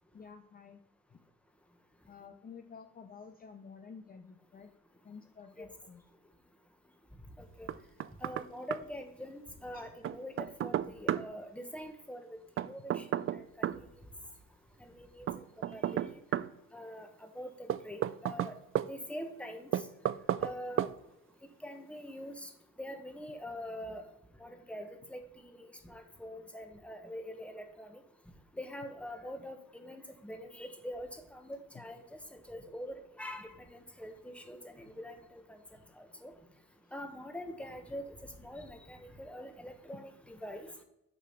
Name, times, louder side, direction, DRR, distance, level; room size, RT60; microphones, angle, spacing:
voice 1, 0.1-0.8 1.1-1.2 2.1-4.7 5.0-6.0 8.2-8.3 9.7-9.9 10.9-11.0 25.4-25.5 35.8-35.9, left 5 dB, 30° left, 6 dB, 0.7 m, -51 dB
voice 2, 7.4-7.7 8.2-12.3 12.6-13.1 13.3-13.4 13.7-13.8 14.9-15.3 15.7-16.0 16.7-17.1 17.3-18.5 18.9-19.7 20.4-20.9 21.6-22.5 22.8-24.0 24.4-28.0 28.6-32.0 32.3-35.6 36.0-36.3 36.9-40.7, equal, 5° left, 6 dB, 1.2 m, -44 dB
Knock, 7.7-8.5 8.7-8.8 10.0-11.3 12.6-13.8 15.3-16.5 17.7-18.9 19.7-20.5 20.8-20.9, right 11 dB, 45° right, 0.4 m, -32 dB
6.7 x 4.9 x 5.8 m, 0.86 s
cardioid pair, 90°, 30 cm